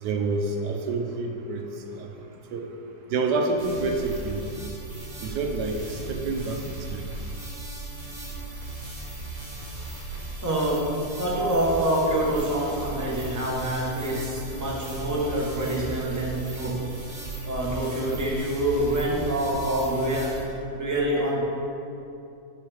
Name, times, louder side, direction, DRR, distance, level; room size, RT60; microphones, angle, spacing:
voice 1, 0.0-1.6 2.0-2.1 2.5-2.7 3.1-4.4 5.2-7.0 16.7-16.8, right 3 dB, 70° right, 3 dB, 1.3 m, -28 dB
sound 1, 3.6-20.4, right 2 dB, 45° right, 1.8 m, -37 dB
voice 2, 10.4-16.9 17.4-20.5 20.7-21.5, right 1 dB, 10° right, -4 dB, 1.0 m, -26 dB
9.3 x 5.6 x 3.5 m, 2.6 s
omnidirectional pair, 1.9 m